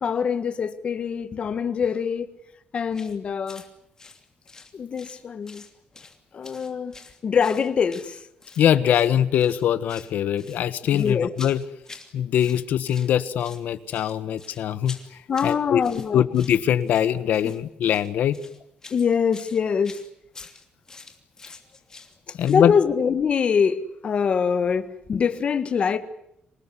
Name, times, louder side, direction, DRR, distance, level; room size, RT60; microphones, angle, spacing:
voice 1, 0.0-2.3 2.7-3.6 4.7-5.6 6.3-6.9 7.2-8.2 10.9-11.3 15.3-16.2 18.9-20.0 22.5-26.0, left 6 dB, 40° left, 1.7 m, -24 dB
sound 1, 2.9-3.2 3.5-3.7 4.0-5.2 5.5-6.2 6.4-8.6 8.9-9.1 9.4-10.1 10.4-12.1 12.4-13.1 13.4-22.7, left 4 dB, 20° left, 2.9 m, -46 dB
voice 2, 8.6-11.6 12.1-15.0 15.4-15.8 16.1-18.4 22.4-22.7, left 10 dB, 75° left, 1.4 m, -22 dB
26.5 x 19.5 x 9.9 m
cardioid pair, 155°, 3 cm